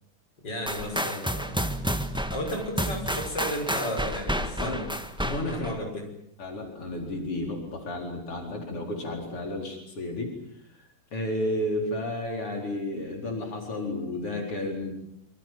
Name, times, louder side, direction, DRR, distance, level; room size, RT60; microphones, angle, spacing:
voice 1, 0.4-1.8 2.3-5.0 5.5-6.2, equal, 50° left, 2 dB, 6.8 m, -34 dB
sound 1, 0.7-5.8, equal, 5° right, 1.3 m, -30 dB
voice 2, 5.2-5.7 6.4-10.3 11.1-14.9, left 1 dB, 90° left, 2 dB, 5.5 m, -32 dB
27.5 x 25.0 x 7.7 m, 0.73 s
omnidirectional pair, 2.4 m